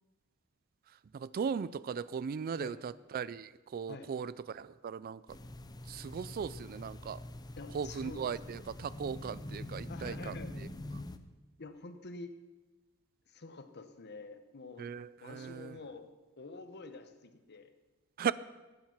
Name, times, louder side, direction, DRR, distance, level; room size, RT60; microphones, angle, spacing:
voice 1, 1.1-5.2 5.9-7.2 7.7-10.3 14.8-15.7 18.2-18.3, right 6 dB, 40° right, 18 dB, 0.3 m, -38 dB
voice 2, 2.5-2.8 3.9-4.1 7.6-8.5 9.9-10.5 11.6-12.3 13.3-14.9 15.2-16.1 16.4-17.7, left 3 dB, 50° left, 9 dB, 1.0 m, -48 dB
sound 1, 5.3-11.2, left 1 dB, 20° left, 0.6 m, -45 dB
15.0 x 8.8 x 5.9 m, 1.2 s
head